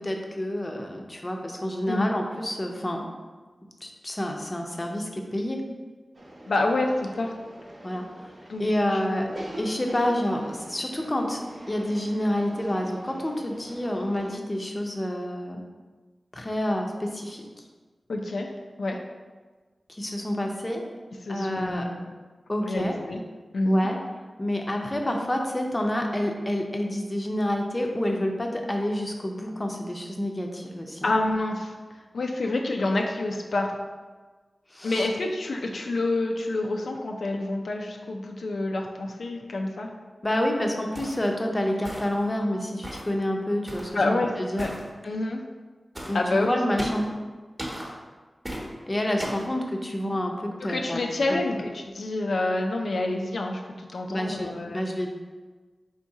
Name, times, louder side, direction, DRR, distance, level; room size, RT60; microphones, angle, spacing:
voice 1, 0.0-3.0 3.8-5.6 7.8-8.3 8.6-9.3 9.6-15.6 16.3-17.5 19.9-20.9 21.3-21.9 22.5-22.9 23.6-24.0 24.4-31.1 34.7-35.1 40.2-44.7 46.1-47.1 48.9-51.4 54.1-55.1, left 1 dB, 25° left, 2 dB, 0.5 m, -28 dB
sound 1, 6.1-14.4, right 1 dB, 50° right, 0.6 m, -44 dB
voice 2, 6.5-7.3 8.5-8.7 8.9-9.4 18.1-18.5 18.8-19.0 21.2-22.1 22.6-23.2 23.5-23.9 31.0-31.7 32.1-33.7 34.8-39.9 43.9-44.7 45.0-45.4 46.1-46.5 50.6-54.8, left 2 dB, 85° left, 1 dB, 0.4 m, -28 dB
sound 2, 40.9-41.3 41.8-42.3 42.8-43.1 43.7-44.0 44.6-44.8 45.9-46.2 46.8-47.1 47.6-47.9 48.4-48.7 49.2-49.5, equal, 15° right, 0.9 m, -36 dB
3.6 x 2.7 x 4.6 m, 1.4 s
wide cardioid pair, 80°, 0 cm